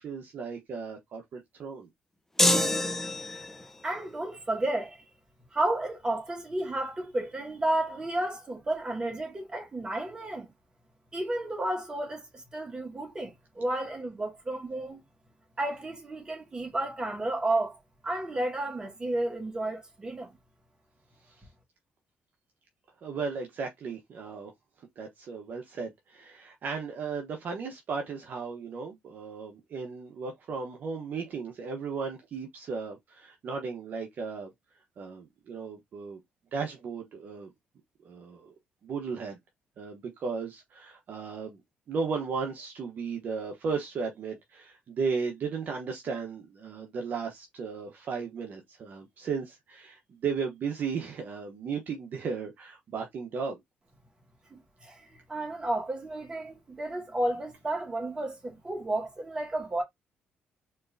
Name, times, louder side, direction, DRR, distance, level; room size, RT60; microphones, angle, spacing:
voice 1, 0.0-1.9 23.0-24.5 25.0-34.5 35.0-36.2 36.5-37.5 38.0-38.5 38.8-39.4 39.8-41.6 41.9-53.6, right 5 dB, 55° right, 1.0 m, -35 dB
sound 1, 2.4-3.7, left 1 dB, 10° left, 0.6 m, -25 dB
voice 2, 3.8-5.0 5.5-10.5 11.1-12.3 12.5-15.0 15.6-17.8 18.0-20.3 54.5-55.0 55.3-59.8, right 1 dB, 20° right, 2.0 m, -32 dB
4.4 x 3.1 x 2.6 m
cardioid pair, 115°, 4 cm